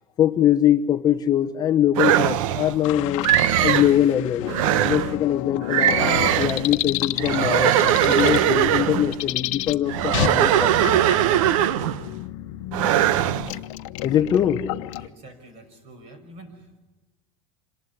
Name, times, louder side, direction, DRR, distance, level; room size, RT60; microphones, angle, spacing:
voice 1, 0.2-3.3 3.6-6.0 6.4-11.0 11.3-11.4 14.0-14.6, left 10 dB, 20° left, 7 dB, 0.8 m, -22 dB
sound 1, 2.0-2.8 3.2-4.0 4.5-5.1 5.7-6.7 7.2-9.1 9.9-12.1 12.7-13.5, right 11 dB, 80° right, 1.0 m, -20 dB
sound 2, 2.8-15.1, left 15 dB, 65° left, 1.1 m, -31 dB
voice 2, 14.9-16.8, right 1 dB, 35° right, 8 dB, 5.9 m, -46 dB
27.0 x 19.5 x 9.6 m, 1.1 s
supercardioid pair, 170°, 17 cm